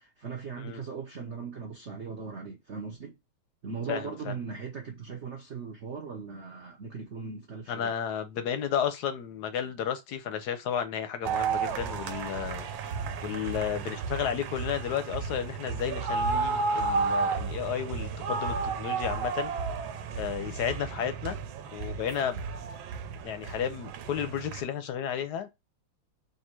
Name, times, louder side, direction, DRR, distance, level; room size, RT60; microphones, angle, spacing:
voice 1, 0.0-3.2 3.6-7.9, right 5 dB, 55° right, 0.7 m, -39 dB
voice 2, 3.9-4.3 7.7-12.7 13.2-19.5 20.1-21.4 21.7-22.4 23.2-25.5, left 8 dB, 70° left, 1.0 m, -32 dB
sound 1, 11.2-24.6, right 4 dB, 75° right, 1.3 m, -32 dB
3.6 x 2.7 x 4.4 m
omnidirectional pair, 2.3 m